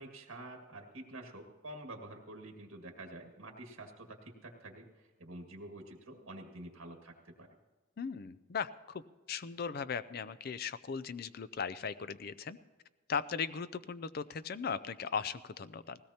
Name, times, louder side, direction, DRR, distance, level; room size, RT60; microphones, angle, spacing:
voice 1, 0.0-7.5, right 1 dB, 75° right, 2 dB, 1.8 m, -48 dB
voice 2, 8.0-9.0 9.3-12.6 13.1-16.0, left 6 dB, 45° left, 14 dB, 0.4 m, -38 dB
19.0 x 17.0 x 2.9 m, 1.3 s
head